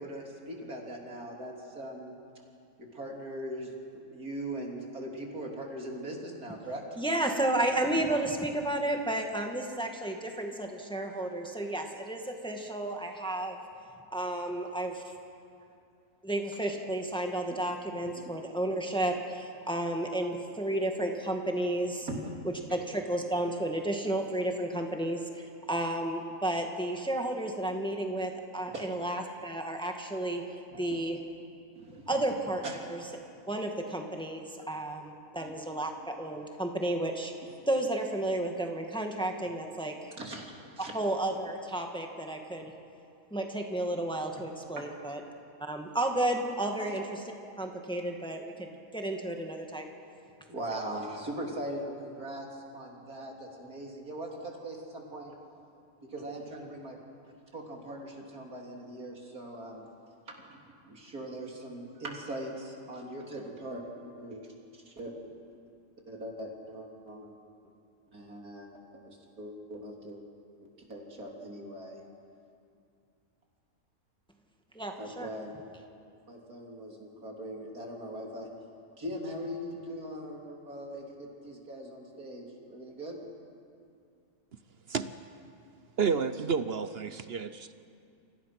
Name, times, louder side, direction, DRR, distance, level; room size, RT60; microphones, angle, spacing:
voice 1, 0.0-2.1 2.8-6.8 17.5-17.6 18.2-18.3 22.1-22.2 28.7-28.8 30.7-31.0 31.8-32.2 32.6-32.9 35.3-35.6 40.2-40.4 40.7-40.9 44.8-44.9 46.8-46.9 50.5-55.3 56.0-57.0 57.5-59.8 60.3-64.5 64.7-65.1 66.1-67.3 68.1-68.7 69.0-70.2 70.9-72.0 75.0-75.5 76.3-78.5 79.0-83.2, right 1 dB, 85° right, 0 dB, 3.8 m, -40 dB
voice 2, 7.0-13.6 14.1-15.0 16.2-22.1 22.4-30.4 30.8-31.2 32.1-33.2 33.5-37.3 37.7-40.2 40.8-42.7 43.3-45.2 45.6-47.3 47.6-49.9 74.8-75.3, right 1 dB, 5° left, 2 dB, 1.8 m, -32 dB
voice 3, 84.9-85.2 86.0-87.7, right 5 dB, 50° right, 12 dB, 0.9 m, -30 dB
29.0 x 25.0 x 6.0 m, 2.5 s
omnidirectional pair, 1.5 m